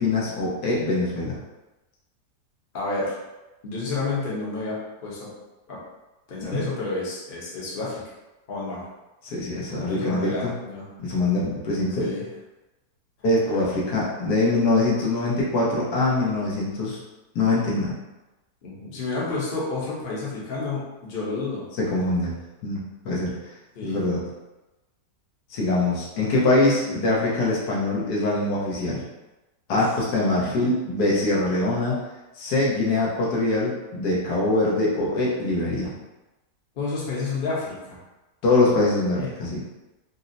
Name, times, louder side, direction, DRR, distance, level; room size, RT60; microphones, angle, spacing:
voice 1, 0.0-1.4 6.5-6.6 9.2-10.5 11.0-12.1 13.2-17.0 17.3-17.9 21.8-22.3 22.6-23.3 23.8-24.2 25.5-29.0 29.7-32.0 32.4-35.9 38.4-39.6, left 2 dB, 80° left, -5 dB, 1.4 m, -23 dB
voice 2, 2.7-3.1 3.6-5.3 5.7-5.8 6.3-8.0 8.5-8.8 9.9-10.9 12.0-12.3 18.6-21.6 23.7-24.0 26.8-26.9 29.7-29.9 36.8-38.0 39.1-39.3, left 3 dB, 40° left, -6 dB, 0.8 m, -30 dB
4.0 x 2.0 x 2.6 m, 1.0 s
omnidirectional pair, 1.7 m